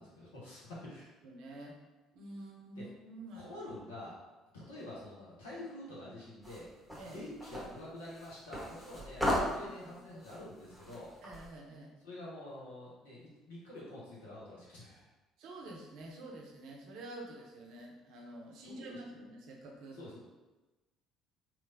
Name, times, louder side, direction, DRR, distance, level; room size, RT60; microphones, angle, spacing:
voice 1, 0.0-1.1 2.7-2.9 3.3-4.2 4.5-6.7 7.1-11.1 12.0-15.1 18.8-19.0 19.9-20.3, left 1 dB, 75° left, -7 dB, 1.0 m, -47 dB
voice 2, 1.2-1.8 2.1-3.5 7.0-7.3 9.6-9.7 11.2-12.0 15.4-20.0, right 1 dB, 60° right, 0 dB, 0.6 m, -48 dB
sound 1, 6.4-11.5, equal, ahead, 1.1 m, -37 dB
3.2 x 3.0 x 2.5 m, 1.2 s
figure-of-eight pair, 55°, 0 cm